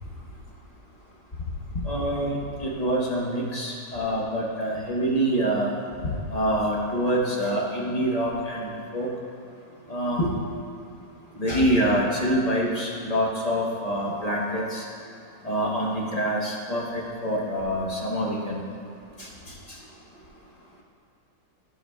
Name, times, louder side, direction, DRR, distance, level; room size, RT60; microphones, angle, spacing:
voice 1, 1.8-5.7 6.3-9.1 9.9-10.3 11.4-14.8 15.4-18.6, equal, 30° left, -3 dB, 0.7 m, -26 dB
14.5 x 4.9 x 2.2 m, 2.5 s
omnidirectional pair, 1.8 m